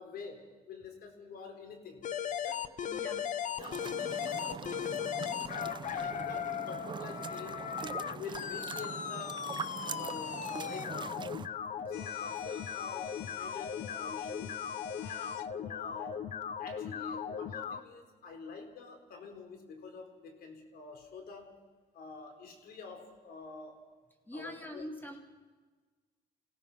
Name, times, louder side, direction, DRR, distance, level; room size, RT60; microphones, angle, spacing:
voice 1, 0.0-2.1 2.4-3.2 3.6-7.6 8.1-9.5 9.8-11.3 11.9-14.6 15.0-16.2 16.6-21.5 21.9-23.8 24.3-24.9, left 4 dB, 65° left, 5 dB, 4.3 m, -47 dB
sound 1, 2.0-17.8, left 8 dB, 50° left, 1.0 m, -38 dB
voice 2, 2.9-3.3 11.8-11.9 15.8-16.1 24.2-25.2, equal, 10° left, 3 dB, 3.2 m, -44 dB
sound 2, 3.6-11.5, right 6 dB, 25° right, 0.7 m, -43 dB
sound 3, 11.9-15.5, left 14 dB, 85° left, 0.9 m, -48 dB
29.0 x 17.0 x 5.7 m, 1.4 s
cardioid pair, 110°, 17 cm